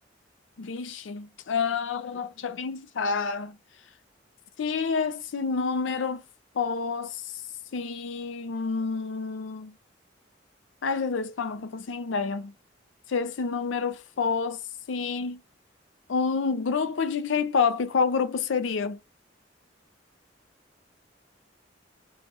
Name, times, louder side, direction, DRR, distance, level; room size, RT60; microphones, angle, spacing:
voice 1, 0.6-3.6 4.6-6.2 6.5-7.2 7.7-9.7 10.8-12.5 13.1-14.6 14.9-15.4 16.1-19.0, left 5 dB, 85° left, 0.5 m, -28 dB
2.5 x 2.4 x 4.0 m
head